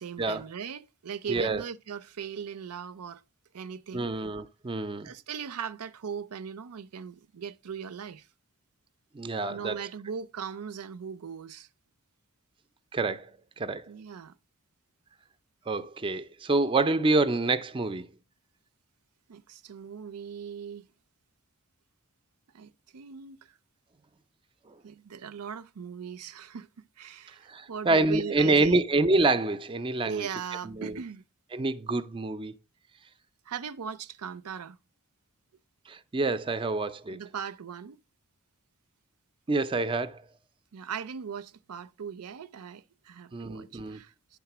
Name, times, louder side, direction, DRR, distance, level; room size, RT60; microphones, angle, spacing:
voice 1, 0.0-3.2 3.5-4.1 5.0-8.3 9.5-11.7 13.9-14.3 19.3-20.9 22.5-23.5 24.8-26.7 27.0-28.8 30.0-31.2 33.5-34.8 37.1-38.0 40.7-44.1, right 7 dB, 80° right, 0.5 m, -39 dB
voice 2, 1.3-1.6 3.9-5.1 9.1-9.9 12.9-13.3 13.6-13.9 15.7-18.1 27.5-30.3 30.6-31.0 31.5-32.5 35.9-37.2 39.5-40.2 43.3-44.0, right 2 dB, 25° right, 0.4 m, -27 dB
9.5 x 3.6 x 5.9 m
head